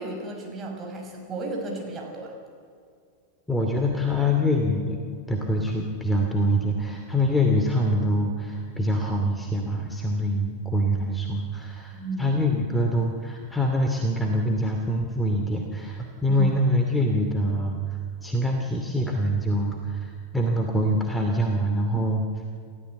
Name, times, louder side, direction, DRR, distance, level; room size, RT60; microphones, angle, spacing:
voice 1, 0.0-2.3 11.9-12.4 16.3-16.4, right 2 dB, 25° right, 1 dB, 6.0 m, -33 dB
voice 2, 3.5-5.0 5.3-22.3, equal, 5° left, 2 dB, 2.4 m, -25 dB
29.0 x 15.0 x 8.4 m, 2.3 s
figure-of-eight pair, 90°, 0 cm